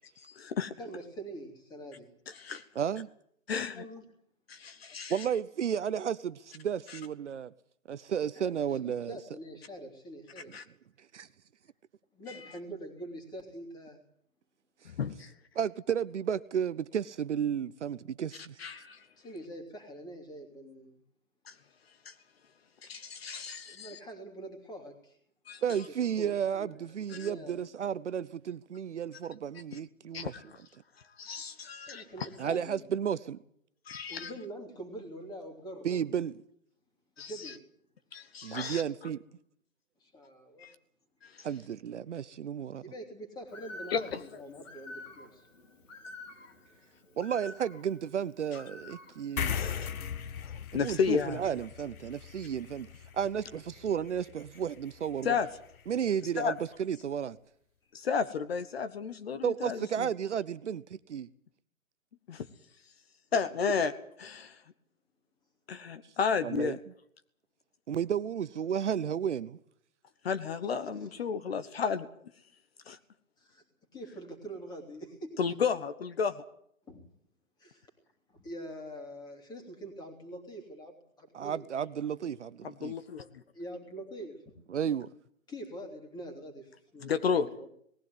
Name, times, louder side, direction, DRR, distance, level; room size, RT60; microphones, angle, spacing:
voice 1, 0.2-0.7 2.4-2.6 3.5-3.8 4.5-5.2 10.5-10.6 15.0-15.3 18.6-19.0 21.5-21.6 22.1-22.2 22.8-24.0 25.5-25.6 27.2-27.3 30.1-30.6 31.2-32.3 33.9-34.3 37.2-37.5 38.1-38.8 40.6-40.7 41.2-41.5 43.9-44.2 49.4-49.9 50.4-51.4 55.2-55.5 56.4-56.5 57.9-60.1 62.3-62.5 63.3-63.9 64.2-64.6 65.7-66.8 70.2-72.1 72.9-73.0 75.4-76.3 82.6-83.3 87.0-87.5, left 6 dB, 45° left, 1.3 m, -32 dB
voice 2, 0.8-2.1 3.8-4.1 8.3-10.5 12.1-14.0 19.2-21.0 23.7-25.2 25.9-27.6 31.9-32.8 34.1-36.0 37.2-37.6 40.0-40.7 42.8-45.5 63.7-63.8 70.7-71.1 73.4-73.6 73.9-75.4 76.9-77.0 77.6-77.9 78.3-81.6 83.5-84.5 85.5-87.7, right 1 dB, 10° left, 3.0 m, -45 dB
voice 3, 2.7-3.1 5.1-7.5 7.9-9.2 11.1-11.3 15.5-18.6 25.6-30.3 32.4-33.4 35.8-36.4 38.4-39.2 41.4-42.8 47.2-49.7 50.7-52.9 53.1-55.4 55.9-57.4 59.4-61.3 66.4-66.8 67.9-69.6 81.3-82.9 84.7-85.1, right 8 dB, 55° right, 0.8 m, -33 dB
Bird, 43.5-49.5, left 2 dB, 65° left, 3.8 m, -49 dB
sound 1, 49.4-56.2, left 8 dB, 90° left, 0.9 m, -40 dB
19.5 x 15.5 x 9.5 m
hypercardioid pair, 155°, 41 cm